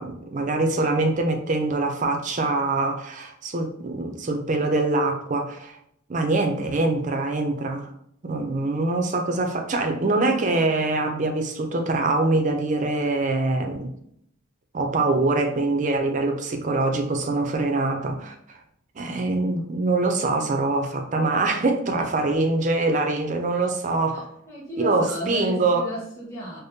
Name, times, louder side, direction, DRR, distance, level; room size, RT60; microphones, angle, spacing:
voice 1, 0.0-5.8 6.1-7.9 8.2-13.9 14.7-18.6 19.0-24.3 24.8-25.8, right 2 dB, 40° right, 4 dB, 0.5 m, -24 dB
voice 2, 24.1-26.6, right 1 dB, 15° left, -9 dB, 1.4 m, -34 dB
5.0 x 2.0 x 2.7 m, 0.71 s
head